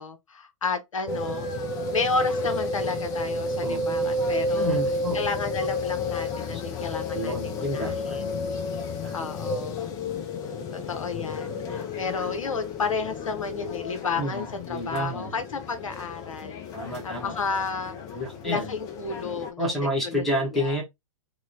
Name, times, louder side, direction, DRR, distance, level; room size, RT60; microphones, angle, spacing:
voice 1, 0.0-4.8 5.1-8.2 9.1-9.9 10.7-16.6 17.0-18.0 18.4-19.7 20.0-20.2 20.5-20.8, left 4 dB, 75° left, 0.7 m, -32 dB
sound 1, 1.1-19.5, left 2 dB, 20° left, 0.4 m, -31 dB
voice 2, 4.5-5.3 7.1-8.2 9.0-9.3 14.2-15.3 16.7-17.3 18.1-18.7 19.6-20.8, equal, ahead, 0.9 m, -29 dB
2.9 x 2.1 x 2.6 m
figure-of-eight pair, 120°, 17 cm